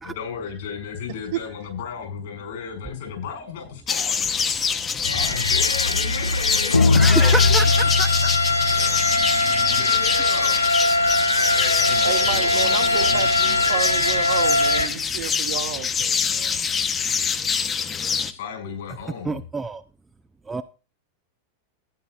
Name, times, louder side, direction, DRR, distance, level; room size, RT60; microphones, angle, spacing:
voice 1, 0.0-4.2 5.1-7.9 9.7-13.8 17.6-17.9 18.3-19.4, left 6 dB, 60° left, 5.9 m, -35 dB
sound 1, 3.9-18.3, left 6 dB, 25° left, 1.0 m, -25 dB
sound 2, 5.0-14.9, left 3 dB, 85° left, 0.6 m, -20 dB
voice 2, 6.9-7.7 8.0-8.3 19.0-19.8 20.5-20.6, right 4 dB, 15° right, 0.6 m, -27 dB
voice 3, 12.0-16.5, right 11 dB, 55° right, 1.4 m, -30 dB
14.5 x 9.6 x 2.6 m
figure-of-eight pair, 90°, 0 cm